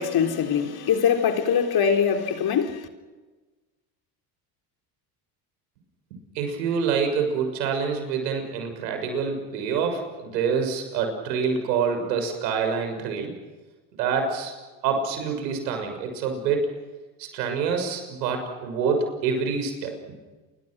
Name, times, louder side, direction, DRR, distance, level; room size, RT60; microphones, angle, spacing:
voice 1, 0.0-2.9, left 7 dB, 50° left, 4.1 m, -23 dB
voice 2, 6.3-13.3 13.9-14.5 14.8-16.7 17.2-19.9, right 5 dB, 85° right, 6.7 m, -26 dB
29.5 x 24.5 x 6.4 m
hypercardioid pair, 80°, 49 cm